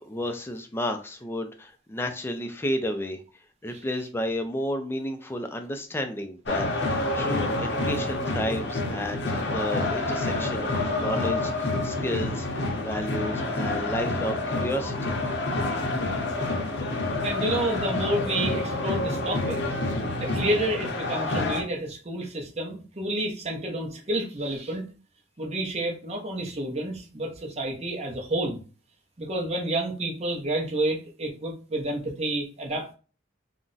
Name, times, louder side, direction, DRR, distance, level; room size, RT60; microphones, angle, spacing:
voice 1, 0.0-3.2 3.6-12.5 12.8-15.1, left 1 dB, 10° left, 6 dB, 0.3 m, -32 dB
sound 1, 6.5-21.6, left 2 dB, 60° left, 0.6 m, -28 dB
voice 2, 17.2-19.6 20.2-24.9 25.4-28.6 29.2-32.9, right 1 dB, 35° right, 0 dB, 0.7 m, -29 dB
2.4 x 2.1 x 3.8 m, 0.37 s
head